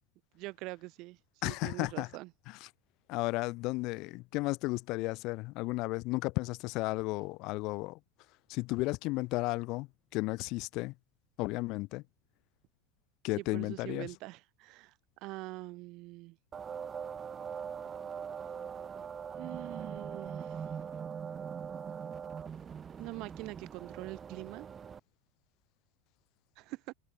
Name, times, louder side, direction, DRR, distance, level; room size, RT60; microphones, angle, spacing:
voice 1, 0.3-1.2 1.4-2.3 13.4-14.9 15.2-16.4 19.4-20.7 23.0-24.7 26.6-26.9, right 21 dB, 45° right, 7.4 m, -44 dB
voice 2, 1.4-2.1 2.5-2.7 3.1-8.0 8.5-10.9 11.4-12.0 13.2-14.1, left 22 dB, 45° left, 2.9 m, -34 dB
sound 1, 16.5-25.0, right 7 dB, 20° right, 6.8 m, -41 dB
supercardioid pair, 165°, 0 cm